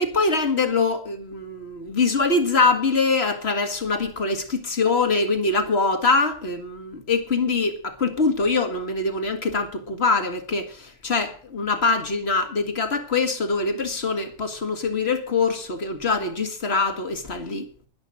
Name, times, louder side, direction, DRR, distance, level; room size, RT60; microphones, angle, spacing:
voice 1, 0.0-17.7, left 3 dB, 55° left, 2.0 m, -23 dB
11.0 x 10.5 x 7.7 m
omnidirectional pair, 1.3 m